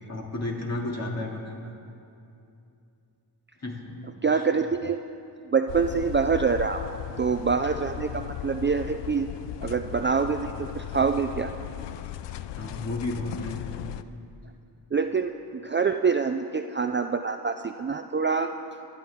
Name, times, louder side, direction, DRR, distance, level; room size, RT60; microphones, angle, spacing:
voice 1, 0.0-1.7 3.6-4.0 4.3-4.4 12.6-14.0, left 2 dB, 40° left, -2 dB, 2.5 m, -33 dB
voice 2, 4.2-5.0 5.5-9.3 9.6-11.5 14.9-18.5, right 5 dB, 30° right, 7 dB, 0.4 m, -26 dB
sound 1, 5.7-14.0, left 12 dB, 80° left, 0.5 m, -37 dB
24.5 x 10.0 x 3.6 m, 2.6 s
wide cardioid pair, 95°, 42 cm